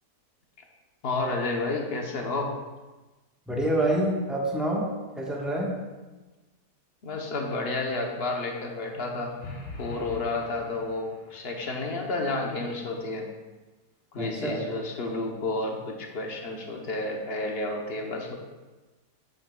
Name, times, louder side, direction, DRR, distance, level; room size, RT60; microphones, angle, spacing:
voice 1, 1.0-2.6 7.0-9.4 9.8-13.3 14.1-18.4, left 2 dB, 45° left, 1 dB, 1.0 m, -31 dB
voice 2, 3.5-5.8 14.2-14.6, right 1 dB, ahead, -3 dB, 1.1 m, -27 dB
sound 1, 9.4-11.5, left 2 dB, 60° left, 1.4 m, -41 dB
8.5 x 8.0 x 2.3 m, 1.2 s
omnidirectional pair, 1.8 m